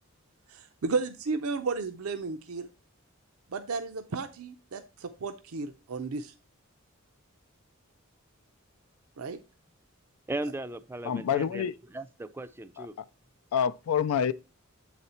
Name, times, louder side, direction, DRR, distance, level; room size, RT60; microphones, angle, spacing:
voice 1, 0.5-2.7 3.5-6.3 9.2-9.4, right 4 dB, 85° right, 0.6 m, -33 dB
voice 2, 10.3-12.9, right 2 dB, 10° right, 0.3 m, -37 dB
voice 3, 11.0-11.7 12.8-12.9 13.5-14.3, left 8 dB, 90° left, 0.4 m, -27 dB
8.0 x 4.1 x 4.2 m
head